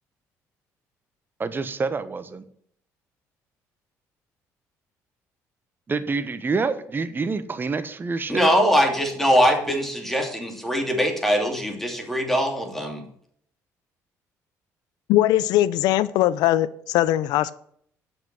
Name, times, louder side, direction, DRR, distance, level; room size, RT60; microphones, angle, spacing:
voice 1, 1.4-2.4 5.9-8.5, right 4 dB, 30° right, 11 dB, 1.1 m, -27 dB
voice 2, 8.3-13.0, equal, 5° left, 3 dB, 2.7 m, -22 dB
voice 3, 15.1-17.5, left 14 dB, 80° left, 18 dB, 0.5 m, -20 dB
7.8 x 6.0 x 7.4 m, 0.65 s
supercardioid pair, 75°, 7 cm